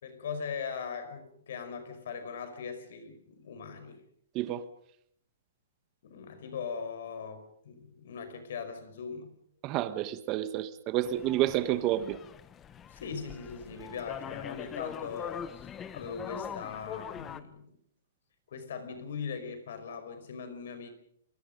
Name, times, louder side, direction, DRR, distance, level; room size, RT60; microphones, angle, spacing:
voice 1, 0.0-4.0 6.0-9.3 12.9-17.8 18.5-20.9, left 6 dB, 60° left, 10 dB, 5.2 m, -40 dB
voice 2, 9.6-12.2, right 13 dB, 25° right, 13 dB, 1.4 m, -29 dB
sound 1, 11.0-17.4, left 8 dB, 15° left, 0.9 m, -43 dB
29.0 x 22.0 x 5.3 m, 0.69 s
hypercardioid pair, 165°, 0 cm